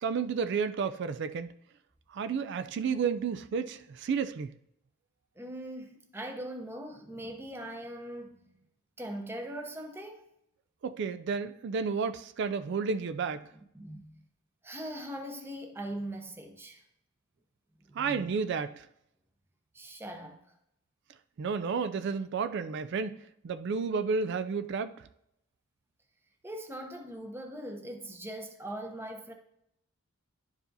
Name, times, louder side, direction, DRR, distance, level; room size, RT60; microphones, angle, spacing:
voice 1, 0.0-1.5 2.1-4.5 10.8-13.5 17.9-18.9 21.4-23.2 23.4-24.9, right 5 dB, 55° right, 0.3 m, -31 dB
voice 2, 5.4-8.5 9.0-10.2 13.7-14.2 14.6-16.8 17.9-18.3 19.7-20.4 26.4-29.3, right 1 dB, 10° right, 0.7 m, -41 dB
11.0 x 4.8 x 2.6 m
head